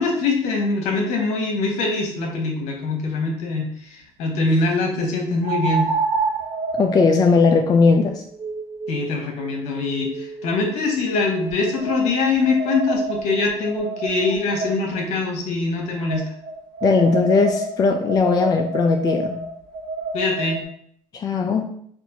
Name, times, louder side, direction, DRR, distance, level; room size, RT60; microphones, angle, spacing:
voice 1, 0.0-5.9 8.9-16.3 20.1-20.6, left 3 dB, 70° left, 1 dB, 1.1 m, -23 dB
sound 1, 2.8-2.9 5.4-10.6 11.3-15.0 16.1-20.6, right 3 dB, 80° right, 0.9 m, -29 dB
voice 2, 6.8-8.2 16.8-19.4 21.1-21.7, left 4 dB, 30° left, 4 dB, 0.3 m, -18 dB
4.3 x 2.5 x 2.7 m, 0.65 s
supercardioid pair, 100°, 12 cm